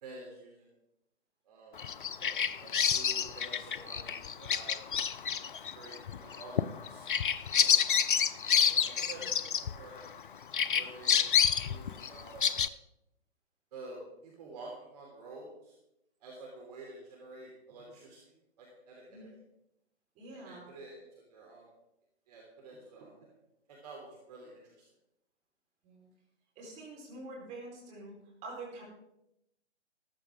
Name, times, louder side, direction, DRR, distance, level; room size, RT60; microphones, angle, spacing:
voice 1, 0.0-0.7 1.4-1.8 2.2-2.3 2.6-4.8 5.7-7.1 7.5-7.7 8.0-10.1 10.7-11.2 11.6-12.5 13.7-15.7 16.2-19.3 20.3-21.0 21.3-21.7 22.3-23.3 23.7-24.8, right 2 dB, 35° right, -2 dB, 3.2 m, -49 dB
Bird vocalization bird call bird song, 1.8-10.2 10.5-12.7, left 8 dB, 45° left, 0.6 m, -29 dB
voice 2, 20.1-20.7 25.8-26.1 26.6-28.1 28.4-28.8, right 2 dB, 20° right, -4 dB, 4.2 m, -46 dB
14.0 x 13.5 x 3.7 m, 0.84 s
figure-of-eight pair, 140°, 35 cm